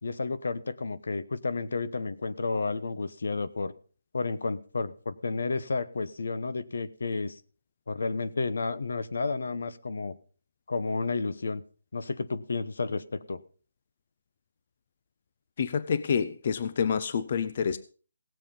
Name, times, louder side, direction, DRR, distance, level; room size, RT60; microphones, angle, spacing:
voice 1, 0.0-3.7 4.1-7.4 7.9-10.2 10.7-11.6 11.9-13.4, left 3 dB, 75° left, 1.0 m, -31 dB
voice 2, 15.6-17.8, left 6 dB, 35° left, 0.5 m, -28 dB
17.0 x 7.7 x 5.3 m
hypercardioid pair, 175°, 0 cm